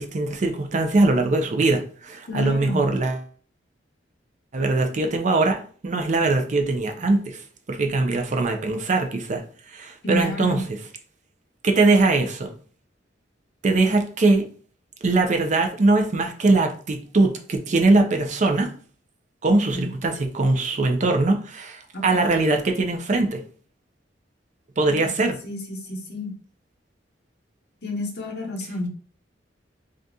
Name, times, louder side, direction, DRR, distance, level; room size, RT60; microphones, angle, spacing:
voice 1, 0.0-3.2 4.5-7.4 7.7-10.8 11.6-12.5 13.6-14.5 15.0-18.7 19.4-23.4 24.8-25.4, right 2 dB, 40° right, 0.5 m, -21 dB
voice 2, 2.3-2.8 10.0-10.6 19.5-19.9 21.9-22.2 24.9-25.1 25.4-26.3 27.8-28.9, left 1 dB, 65° left, 0.9 m, -30 dB
2.7 x 2.5 x 3.5 m
head